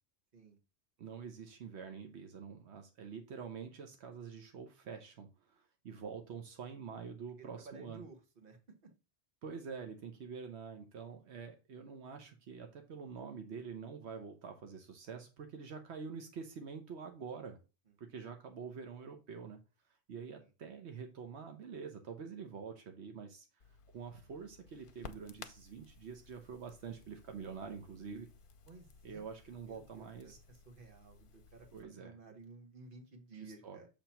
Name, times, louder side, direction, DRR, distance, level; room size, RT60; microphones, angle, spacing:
voice 1, 1.0-8.0 9.4-17.6 18.0-19.6 20.1-23.5 23.9-28.3 29.0-30.4 31.7-32.2 33.3-33.8, right 6 dB, 85° right, 5 dB, 1.1 m, -46 dB
voice 2, 7.6-8.6 28.7-29.2 29.7-30.3 30.7-33.9, right 3 dB, 55° right, 3 dB, 1.4 m, -54 dB
Crackle, 23.6-31.8, left 5 dB, 55° left, 0.8 m, -57 dB
7.2 x 2.9 x 5.6 m, 0.31 s
omnidirectional pair, 1.1 m